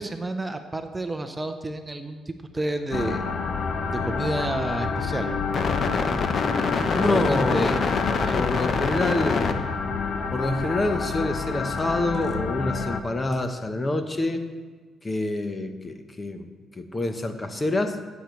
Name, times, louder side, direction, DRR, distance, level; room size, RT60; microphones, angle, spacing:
voice 1, 0.0-3.2 3.9-5.3 7.0-7.8 8.1-8.4 9.8-10.0, right 2 dB, 15° right, 7 dB, 0.7 m, -30 dB
sound 1, 2.9-13.0, left 5 dB, 50° left, 0.8 m, -26 dB
voice 2, 6.9-7.8 8.3-9.5 10.3-14.4 15.0-18.0, left 2 dB, 25° left, 7 dB, 0.9 m, -27 dB
15.5 x 8.2 x 3.1 m, 1.4 s
cardioid pair, 90°, 0 cm